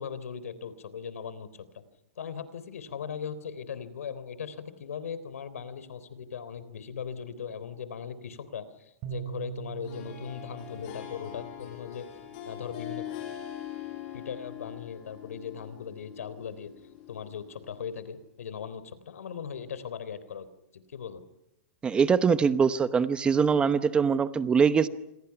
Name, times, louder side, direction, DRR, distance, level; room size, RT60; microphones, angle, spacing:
voice 1, 0.0-1.5 1.7-1.8 2.2-12.1 12.5-13.0 14.1-16.7 17.1-20.5 20.7-21.2, left 7 dB, 85° left, 15 dB, 3.5 m, -39 dB
sound 1, 9.0-12.3, right 13 dB, 35° right, 4.5 m, -42 dB
Harp, 9.8-18.0, left 11 dB, 40° left, 5.3 m, -42 dB
voice 2, 21.8-24.9, right 6 dB, 15° right, 13 dB, 0.9 m, -23 dB
28.5 x 26.5 x 5.9 m, 0.89 s
hypercardioid pair, 150°, 8 cm